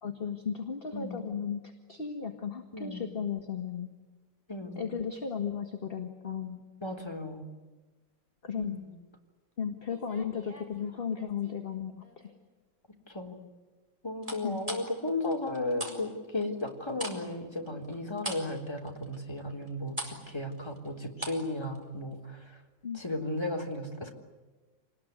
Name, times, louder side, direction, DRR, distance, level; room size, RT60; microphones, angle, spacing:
voice 1, 0.0-3.9 4.8-6.6 8.4-8.8 9.6-12.3 14.4-14.6 22.8-23.0, left 7 dB, 30° left, 4 dB, 1.9 m, -35 dB
voice 2, 0.9-1.2 2.7-3.1 4.5-4.9 6.8-7.4 8.6-8.9 13.1-13.4 14.0-22.5 22.9-24.1, left 2 dB, 15° left, 1 dB, 3.6 m, -35 dB
sound 1, 9.8-11.5 12.0-12.5 14.2-16.0 16.2-21.5 21.7-21.9, right 1 dB, 20° right, 4.9 m, -41 dB
27.5 x 20.0 x 9.7 m, 1.3 s
omnidirectional pair, 2.0 m